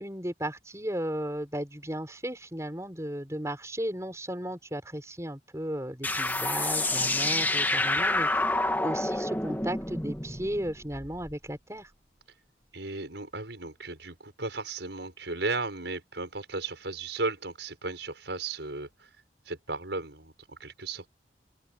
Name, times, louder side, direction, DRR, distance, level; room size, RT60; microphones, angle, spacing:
voice 1, 0.0-11.9, right 1 dB, 15° right, 6.1 m, -35 dB
sound 1, 6.0-11.3, left 2 dB, 10° left, 2.2 m, -28 dB
voice 2, 12.7-19.1 19.5-21.1, right 3 dB, 85° right, 6.0 m, -35 dB
open air
head